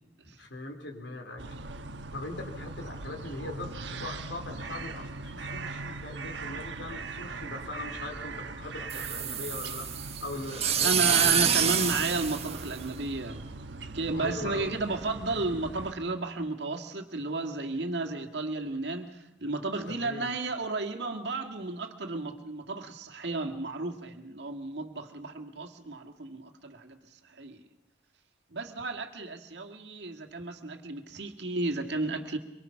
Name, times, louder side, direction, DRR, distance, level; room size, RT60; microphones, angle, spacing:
voice 1, 0.4-1.4 2.1-11.7 14.1-14.7 19.9-20.3 29.2-29.3, left 2 dB, 90° left, 2 dB, 3.8 m, -40 dB
sound 1, 1.4-15.9, right 3 dB, 85° right, 1.2 m, -41 dB
sound 2, 8.9-13.3, right 8 dB, 35° right, 1.4 m, -27 dB
voice 2, 10.8-13.5 13.9-27.0 27.3-27.6 28.5-32.4, right 3 dB, 70° right, 4 dB, 2.0 m, -33 dB
24.5 x 23.5 x 5.9 m, 0.94 s
head